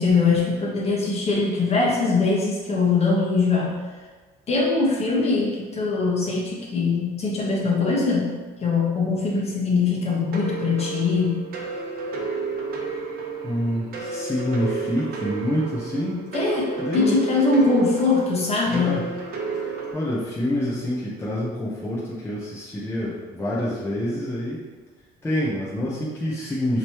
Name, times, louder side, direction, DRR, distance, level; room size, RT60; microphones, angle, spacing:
voice 1, 0.0-3.8 4.5-11.4 16.3-19.1, left 4 dB, 40° left, -4 dB, 1.3 m, -22 dB
sound 1, 10.3-19.9, right 4 dB, 60° right, 0.8 m, -31 dB
voice 2, 13.4-16.3 16.8-17.2 18.7-19.0 19.5-24.6 25.2-26.8, equal, 15° left, -7 dB, 0.8 m, -27 dB
5.1 x 3.1 x 3.0 m, 1.4 s
cardioid pair, 115°, 17 cm